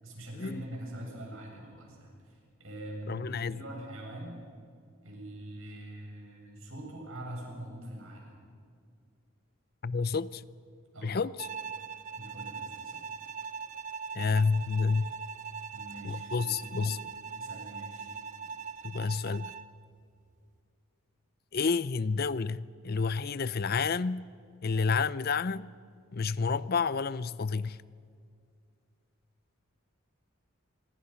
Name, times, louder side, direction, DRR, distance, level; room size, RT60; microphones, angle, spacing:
voice 1, 0.0-4.4 5.0-8.5 10.9-11.2 12.2-13.0 15.7-17.0 17.3-18.2, right 1 dB, 70° right, 7.5 m, -44 dB
voice 2, 3.1-3.6 9.8-10.4 11.0-11.3 14.1-15.1 16.0-17.0 18.8-19.5 21.5-24.2 24.6-25.7 26.1-27.8, left 4 dB, 45° left, 0.5 m, -29 dB
Bowed string instrument, 11.4-19.8, right 6 dB, 35° right, 0.7 m, -41 dB
26.5 x 24.5 x 5.8 m
head